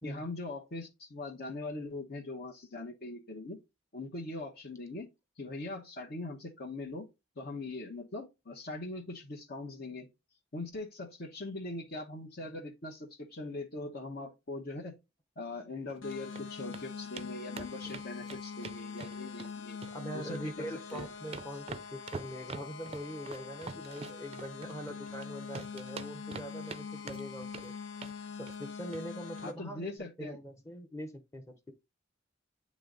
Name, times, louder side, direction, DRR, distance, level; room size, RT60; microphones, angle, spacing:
voice 1, 0.0-3.6 3.9-5.1 5.4-7.1 7.4-10.1 10.5-15.0 15.4-19.8 20.1-20.7 20.9-21.1 29.4-30.4, left 2 dB, 55° left, 1.0 m, -41 dB
sound 1, 15.9-16.4 16.7-16.8 17.2-17.3 17.6-19.5 19.8-20.5 20.8-25.3 25.5-26.8 27.1-27.7 28.0-28.2 28.5-28.6 28.9-29.0 29.4-29.5, right 4 dB, 30° right, 0.4 m, -45 dB
sound 2, 16.0-29.5, left 5 dB, 85° left, 0.9 m, -44 dB
voice 2, 19.9-27.7 28.3-31.7, equal, 15° left, 0.8 m, -43 dB
8.5 x 3.1 x 3.8 m
head